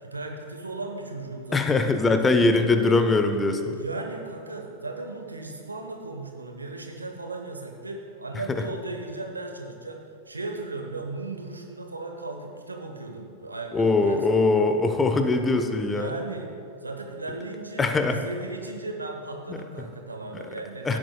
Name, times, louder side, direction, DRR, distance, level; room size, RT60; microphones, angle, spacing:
voice 1, 0.0-1.9 2.3-3.1 3.7-14.5 15.9-16.5 16.8-21.0, right 2 dB, 80° right, 3 dB, 1.0 m, -36 dB
voice 2, 1.5-3.7 13.7-16.1 17.8-18.2 19.5-19.9 20.9-21.0, left 3 dB, 15° left, 7 dB, 0.7 m, -22 dB
16.0 x 7.7 x 2.2 m, 2.5 s
figure-of-eight pair, 90°, 0 cm